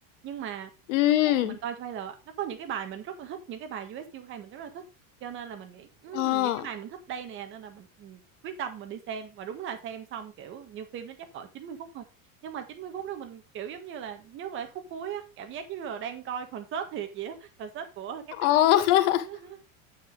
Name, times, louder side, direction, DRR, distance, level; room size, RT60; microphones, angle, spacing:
voice 1, 0.2-0.7 1.2-4.8 5.2-12.0 12.4-18.2 19.2-19.6, right 8 dB, 30° right, 1.6 m, -38 dB
voice 2, 0.9-1.5 6.1-6.6 18.4-19.2, left 13 dB, 65° left, 1.6 m, -22 dB
9.6 x 7.2 x 3.6 m
supercardioid pair, 165°, 40 cm